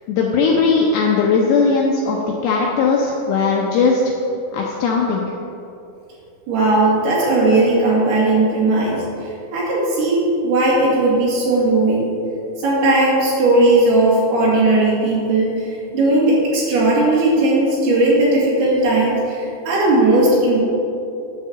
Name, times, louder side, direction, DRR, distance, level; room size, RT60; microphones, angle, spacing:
voice 1, 0.1-4.0 4.5-5.2, left 4 dB, 80° left, -1 dB, 2.5 m, -18 dB
voice 2, 6.5-9.0 9.5-12.1 12.6-15.7 15.9-20.6, right 2 dB, 60° right, -6 dB, 3.9 m, -17 dB
9.9 x 5.6 x 7.4 m, 2.8 s
omnidirectional pair, 5.6 m